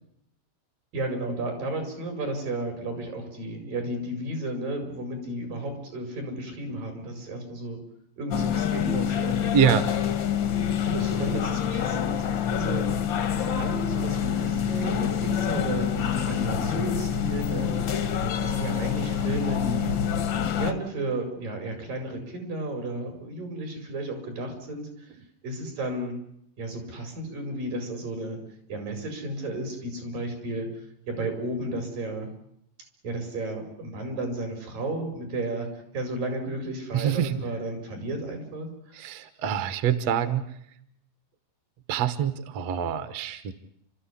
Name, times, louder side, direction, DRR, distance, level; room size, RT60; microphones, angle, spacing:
voice 1, 0.9-7.8 8.2-9.4 10.7-12.2 12.5-13.1 13.4-18.1 18.4-20.0 20.5-25.1 25.4-26.2 26.6-28.4 28.7-30.7 31.1-32.3 33.0-35.7 35.9-39.0, right 1 dB, 80° right, 5 dB, 7.0 m, -33 dB
sound 1, 8.3-20.7, left 8 dB, 65° left, 1.1 m, -26 dB
voice 2, 9.5-9.9 36.9-37.4 39.0-40.5 41.9-43.5, right 8 dB, 60° right, 11 dB, 1.9 m, -25 dB
30.0 x 14.0 x 9.9 m, 0.74 s
omnidirectional pair, 3.8 m